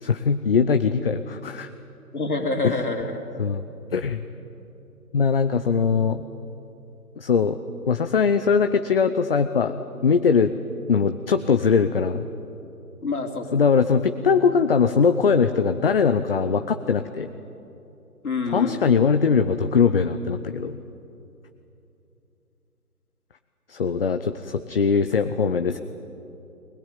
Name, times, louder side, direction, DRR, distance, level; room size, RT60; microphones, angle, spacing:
voice 1, 0.0-1.7 2.6-2.8 3.4-3.7 3.9-4.2 5.1-6.2 7.2-7.6 7.9-9.7 10.0-10.5 10.9-12.3 13.5-17.3 18.5-20.8 23.7-25.8, left 5 dB, 40° left, 9 dB, 0.7 m, -21 dB
voice 2, 2.1-3.2 13.0-13.7 18.2-19.1, left 3 dB, 75° left, 3 dB, 3.3 m, -27 dB
21.0 x 20.0 x 9.2 m, 2.9 s
figure-of-eight pair, 140°, 46 cm